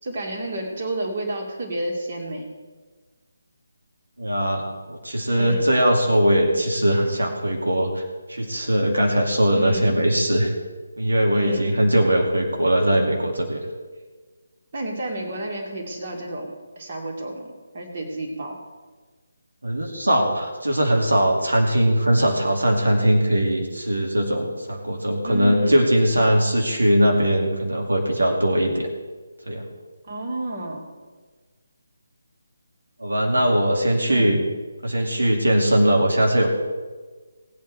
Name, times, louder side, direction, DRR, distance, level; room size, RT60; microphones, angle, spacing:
voice 1, 0.0-2.5 5.3-5.7 9.5-10.0 11.3-11.9 14.7-18.6 25.2-25.8 30.0-30.9 34.1-34.3, right 1 dB, 40° right, -1 dB, 2.7 m, -31 dB
voice 2, 4.2-8.0 8.3-10.5 11.0-13.6 19.6-28.9 29.5-29.6 33.0-34.4 34.8-36.5, right 1 dB, 75° right, 0 dB, 2.2 m, -20 dB
18.5 x 8.7 x 4.4 m, 1.4 s
figure-of-eight pair, 150°, 0 cm